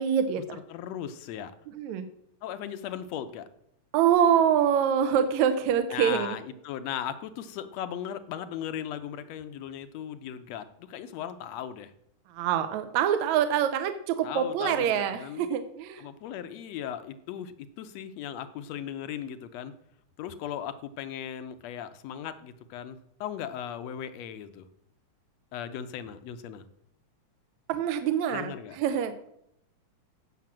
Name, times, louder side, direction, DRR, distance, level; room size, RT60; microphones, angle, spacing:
voice 1, 0.0-0.6 1.7-2.1 3.9-6.4 12.3-16.1 27.7-29.1, right 8 dB, 75° right, 9 dB, 2.0 m, -25 dB
voice 2, 0.5-1.5 2.4-3.5 5.9-11.9 14.2-15.5 16.0-19.7 20.2-24.7 25.5-26.7 28.3-28.8, left 9 dB, 70° left, 12 dB, 1.8 m, -37 dB
15.5 x 5.9 x 7.4 m, 0.77 s
omnidirectional pair, 3.5 m